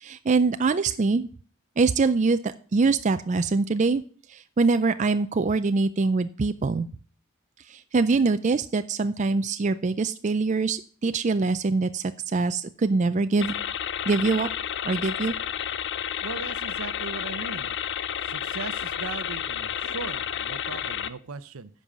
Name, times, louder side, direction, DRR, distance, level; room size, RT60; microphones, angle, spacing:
voice 1, 0.0-1.3 1.8-4.0 4.6-6.9 7.9-12.0 12.3-13.5 14.1-14.5 14.8-15.3, right 4 dB, 35° right, 10 dB, 0.4 m, -23 dB
sound 1, 13.4-21.1, left 9 dB, 55° left, 0.5 m, -31 dB
voice 2, 16.2-17.8 18.2-21.7, right 4 dB, 75° right, 15 dB, 0.7 m, -38 dB
10.0 x 5.4 x 7.3 m, 0.43 s
head